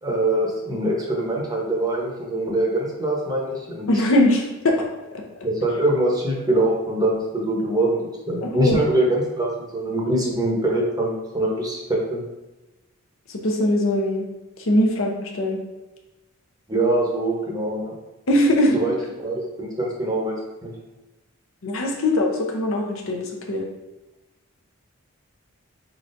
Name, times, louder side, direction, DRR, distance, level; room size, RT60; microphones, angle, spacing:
voice 1, 0.0-3.9 5.4-8.0 8.3-12.2 16.7-17.9 18.7-19.0 19.2-20.4 20.6-20.7, right 1 dB, 15° right, -2 dB, 0.8 m, -23 dB
voice 2, 3.9-4.8 8.4-8.8 13.3-14.3 14.7-15.6 18.3-18.8 21.6-23.6, left 1 dB, 65° left, 1 dB, 0.7 m, -21 dB
4.4 x 3.9 x 2.5 m, 1.1 s
head